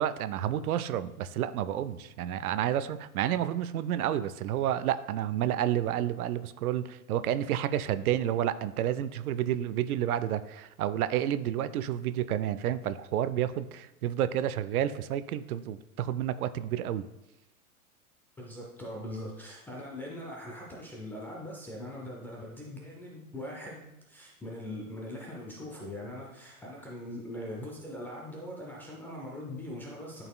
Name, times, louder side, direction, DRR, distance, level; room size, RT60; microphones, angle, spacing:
voice 1, 0.0-17.1, right 11 dB, 70° right, 13 dB, 0.5 m, -30 dB
voice 2, 18.4-30.3, left 1 dB, 5° left, -3 dB, 0.3 m, -41 dB
11.0 x 4.1 x 2.2 m, 0.92 s
hypercardioid pair, 105°, 45 cm